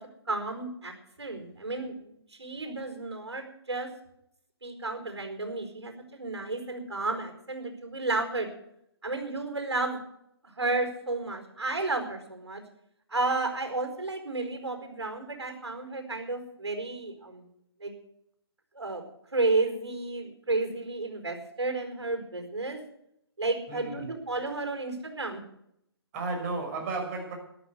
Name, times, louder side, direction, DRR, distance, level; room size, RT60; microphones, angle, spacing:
voice 1, 0.3-0.9 1.2-3.9 4.6-8.5 9.0-10.0 10.4-12.6 13.1-17.5 17.8-17.9 18.7-19.0 19.3-22.8 23.4-25.4, right 3 dB, 90° right, 4 dB, 4.8 m, -32 dB
voice 2, 23.7-24.2 26.1-27.3, right 3 dB, 35° right, 1 dB, 6.1 m, -33 dB
13.5 x 11.0 x 8.2 m, 0.77 s
hypercardioid pair, 145°, 14 cm